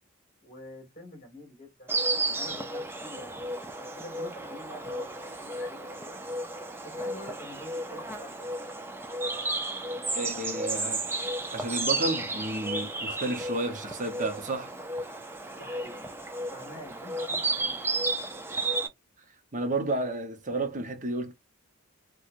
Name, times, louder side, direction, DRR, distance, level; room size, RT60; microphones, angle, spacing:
voice 1, 0.4-2.0 2.2-6.2 6.8-8.7 9.8-10.9 15.5-16.1 16.5-17.8, left 1 dB, 40° left, 2.2 m, -47 dB
Insect, 1.9-18.9, right 2 dB, 10° right, 0.4 m, -33 dB
voice 2, 10.2-11.1 11.5-14.7 19.5-21.3, right 2 dB, 35° right, 0.8 m, -31 dB
4.5 x 2.3 x 2.5 m
head